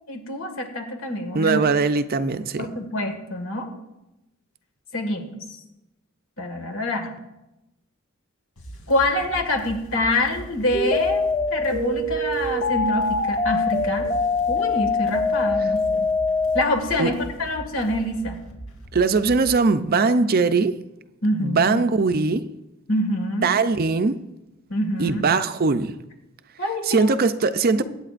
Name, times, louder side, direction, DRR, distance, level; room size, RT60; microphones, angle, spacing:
voice 1, 0.0-1.6 2.6-3.7 4.9-5.6 6.4-7.1 8.9-14.2 14.5-16.1 16.5-18.4 21.2-21.8 22.9-23.5 24.7-25.2 26.6-27.1 27.7-27.8, left 1 dB, 70° left, 1.9 m, -26 dB
voice 2, 1.3-2.7 17.0-17.1 18.9-20.8 21.4-22.5 23.4-24.2 25.0-25.9 26.9-27.8, right 4 dB, 45° right, 0.5 m, -20 dB
sound 1, 8.6-19.5, right 1 dB, 90° left, 2.7 m, -40 dB
sound 2, 10.7-16.6, left 3 dB, 35° left, 1.2 m, -23 dB
22.5 x 9.2 x 2.5 m
head